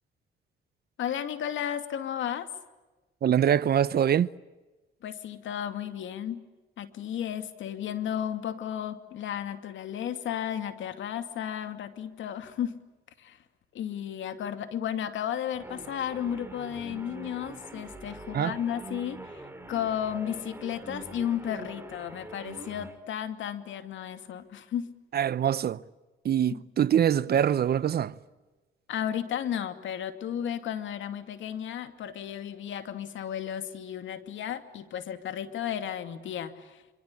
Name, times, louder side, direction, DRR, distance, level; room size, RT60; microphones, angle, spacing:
voice 1, 1.0-2.5 5.0-6.4 6.8-12.8 13.2-13.4 13.7-24.9 26.5-26.6 28.9-36.8, left 9 dB, 75° left, 2.5 m, -33 dB
voice 2, 3.2-4.3 18.3-18.5 25.1-25.8 26.2-28.1, right 9 dB, 50° right, 0.8 m, -24 dB
sound 1, 15.5-23.0, right 2 dB, 10° right, 4.1 m, -44 dB
27.0 x 25.0 x 8.6 m
cardioid pair, 90°, 20 cm